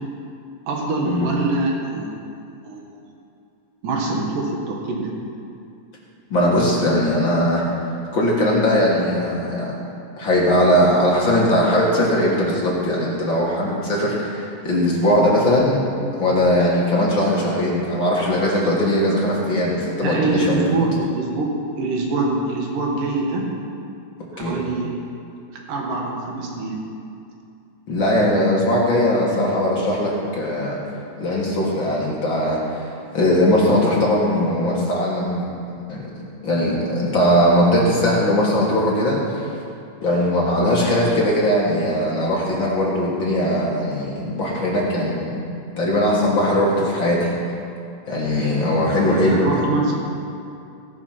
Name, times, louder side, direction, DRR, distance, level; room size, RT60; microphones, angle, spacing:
voice 1, 0.7-2.1 2.6-2.9 3.8-5.1 20.0-21.5 21.8-23.5 24.3-24.9 25.5-26.8 49.1-49.9, right 2 dB, 75° right, 0 dB, 3.1 m, -24 dB
voice 2, 6.3-7.6 8.1-9.7 10.2-15.8 16.1-20.7 24.4-24.6 27.9-30.8 31.2-32.6 33.1-35.5 35.9-36.1 36.4-39.4 40.0-45.4 45.8-47.4 48.1-49.6, left 1 dB, 45° left, -5 dB, 1.9 m, -19 dB
17.5 x 6.0 x 5.9 m, 2.6 s
omnidirectional pair, 3.8 m